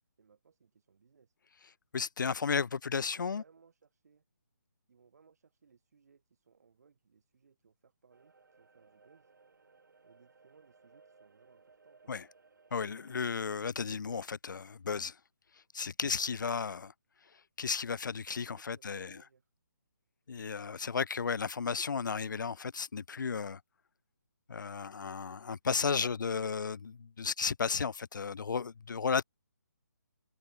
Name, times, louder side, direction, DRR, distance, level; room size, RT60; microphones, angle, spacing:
voice 1, 0.2-1.3 3.0-4.2 4.9-9.3 10.0-12.1 18.6-19.5, right 6 dB, 55° right, 3.7 m, -65 dB
voice 2, 1.9-3.4 12.1-12.2 12.7-15.1 15.7-16.9 17.6-19.2 20.3-23.6 24.5-29.2, left 5 dB, 85° left, 0.4 m, -34 dB
sound 1, 8.1-13.4, right 4 dB, 80° right, 1.5 m, -63 dB
hypercardioid pair, 165°, 10 cm